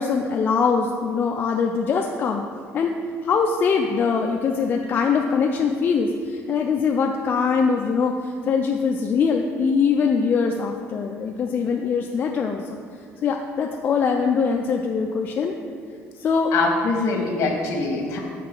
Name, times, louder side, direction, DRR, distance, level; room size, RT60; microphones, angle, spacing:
voice 1, 0.0-2.4 2.7-3.0 3.2-12.8 13.2-15.5 16.2-16.5, left 5 dB, 35° left, 2 dB, 0.3 m, -22 dB
voice 2, 16.5-18.2, left 3 dB, 60° left, 1 dB, 1.3 m, -23 dB
6.5 x 3.7 x 6.0 m, 2.2 s
cardioid pair, 150°, 5 cm